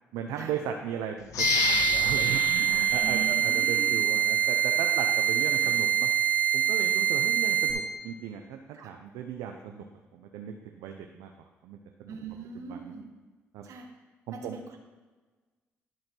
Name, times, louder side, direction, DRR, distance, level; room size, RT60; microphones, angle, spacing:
voice 1, 0.1-6.1 6.5-9.8 10.1-11.3 11.6-12.2 12.7-12.9 13.5-13.7 14.3-14.6, right 8 dB, 85° right, 4 dB, 0.6 m, -37 dB
sound 1, 1.3-4.0 4.5-4.6, left 7 dB, 75° left, 0.6 m, -32 dB
sound 2, 1.4-7.7, right 10 dB, 30° right, 1.4 m, -25 dB
voice 2, 3.0-4.0 5.6-5.8 8.7-8.9 12.1-13.1 13.6-13.9 14.3-14.8, right 6 dB, 70° right, 3 dB, 1.3 m, -41 dB
10.5 x 3.8 x 6.1 m, 1.3 s
supercardioid pair, 60°, 6 cm